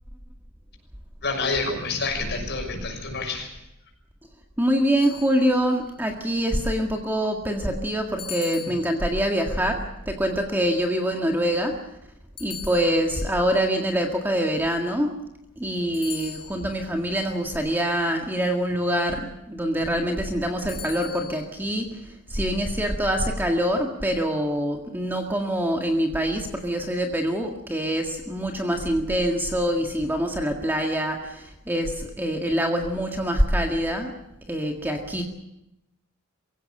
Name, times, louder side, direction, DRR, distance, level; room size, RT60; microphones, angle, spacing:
voice 1, 1.2-3.5, left 3 dB, 50° left, 2 dB, 6.3 m, -28 dB
voice 2, 4.6-11.8 12.4-15.1 15.6-34.1 34.5-35.2, equal, 10° right, 2 dB, 1.8 m, -25 dB
sound 1, 5.0-5.9 8.2-9.4 12.4-13.4 15.9-16.9 20.7-21.5, left 8 dB, 25° left, 3.0 m, -40 dB
23.0 x 16.5 x 8.8 m, 0.88 s
head